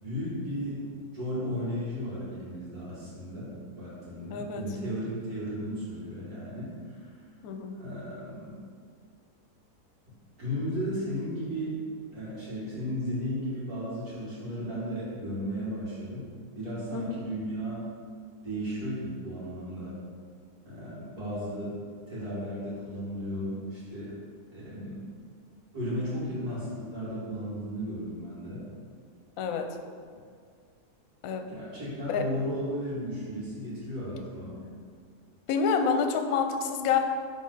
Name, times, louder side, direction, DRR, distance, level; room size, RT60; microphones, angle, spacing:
voice 1, 0.0-0.8 1.1-3.5 3.8-7.1 7.7-8.6 10.4-11.7 12.1-16.3 16.5-17.8 18.4-20.0 20.6-21.8 22.1-24.1 24.5-25.0 25.7-28.6 31.5-34.6, equal, 65° right, -9 dB, 2.6 m, -35 dB
voice 2, 4.3-4.6 7.4-7.8 16.9-17.2 29.4-29.7 31.2-31.5 32.1-32.3 35.5-37.0, left 6 dB, 65° left, 6 dB, 1.0 m, -27 dB
10.5 x 3.6 x 3.9 m, 2.1 s
omnidirectional pair, 1.7 m